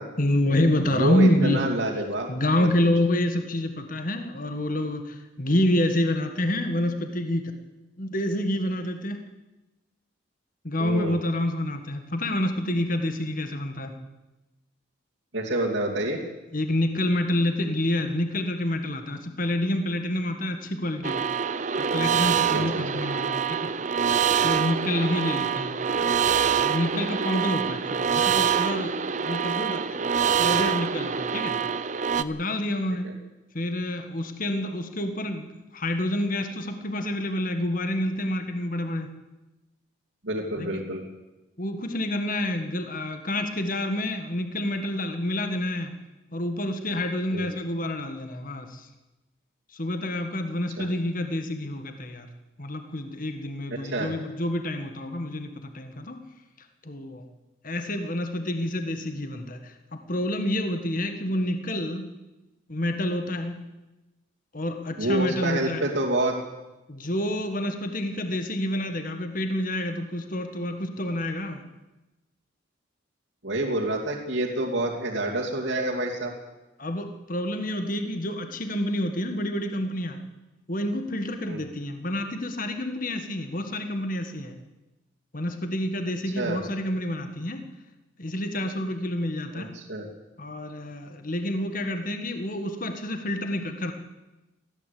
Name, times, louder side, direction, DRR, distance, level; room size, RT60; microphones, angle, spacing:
voice 1, 0.2-1.6 2.3-7.5 8.0-9.2 10.6-13.9 16.5-21.3 21.9-23.7 24.4-25.8 26.6-30.1 30.4-31.6 32.2-33.1 33.5-39.1 40.6-40.8 41.6-45.9 46.3-48.9 49.7-52.3 52.6-56.2 56.8-57.2 57.6-62.1 62.7-63.7 64.5-65.8 66.9-71.6 76.8-80.2 80.7-84.5 85.3-87.6 88.2-89.7 90.4-93.9, left 1 dB, 45° left, 7 dB, 1.7 m, -28 dB
voice 2, 0.8-2.3 2.6-2.7 10.8-11.2 15.3-16.2 22.5-22.6 33.0-33.1 40.2-41.0 47.3-47.5 50.8-50.9 53.8-54.1 65.0-66.3 73.4-76.3 81.4-81.6 86.4-86.6 89.5-90.1, right 1 dB, 65° right, -4 dB, 2.7 m, -27 dB
sound 1, 21.0-32.2, right 7 dB, 40° right, 0.7 m, -25 dB
20.0 x 15.0 x 8.5 m, 1.0 s
head